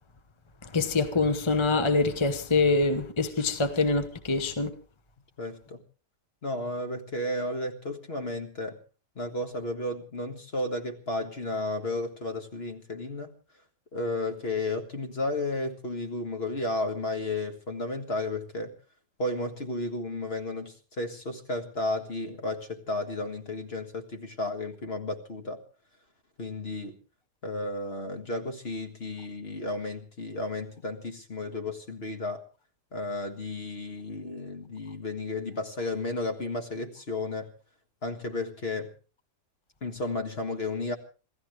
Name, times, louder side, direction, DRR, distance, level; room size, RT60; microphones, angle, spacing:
voice 1, 0.6-4.7, left 3 dB, 20° left, 0.8 m, -25 dB
voice 2, 5.4-5.8 6.4-8.8 9.2-13.3 13.9-18.7 19.2-25.6 26.4-27.0 27.4-32.4 32.9-37.5 38.0-38.9 39.8-41.0, left 2 dB, 40° left, 1.8 m, -33 dB
27.0 x 15.0 x 3.2 m
omnidirectional pair, 1.8 m